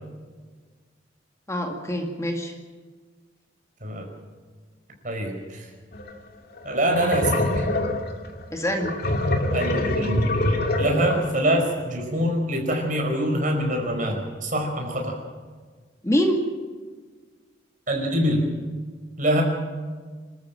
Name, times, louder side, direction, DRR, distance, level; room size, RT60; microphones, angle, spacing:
voice 1, 1.5-2.5 8.5-9.0 16.0-16.4, equal, 15° left, 3 dB, 2.1 m, -24 dB
voice 2, 5.0-5.6 6.6-7.7 9.5-10.3 10.8-15.2 17.9-18.6 19.2-19.4, equal, 40° right, 2 dB, 5.0 m, -24 dB
sound 1, 5.9-6.1 6.6-11.4, left 1 dB, 50° left, 2.5 m, -25 dB
27.0 x 13.5 x 7.7 m, 1.5 s
head